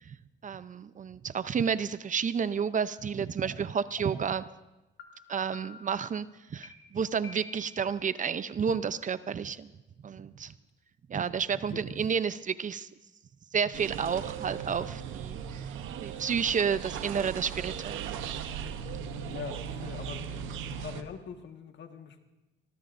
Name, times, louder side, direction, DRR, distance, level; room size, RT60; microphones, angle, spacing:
voice 1, 0.4-4.4 5.3-9.7 10.0-10.5 11.1-12.9 13.5-15.4 16.0-18.2 18.9-19.3, right 6 dB, 40° right, 14 dB, 0.6 m, -31 dB
sound 1, 3.4-3.5 4.0-4.4 5.0-5.1 5.5-6.0 6.6-6.7 7.2-7.8, left 3 dB, 85° left, 2.5 m, -48 dB
sound 2, 13.7-21.0, right 7 dB, 90° right, 0.9 m, -38 dB
voice 2, 19.2-20.3 20.6-22.2, left 6 dB, 65° left, 5 dB, 1.6 m, -43 dB
25.0 x 19.5 x 2.6 m, 1.0 s
cardioid pair, 90°, 20 cm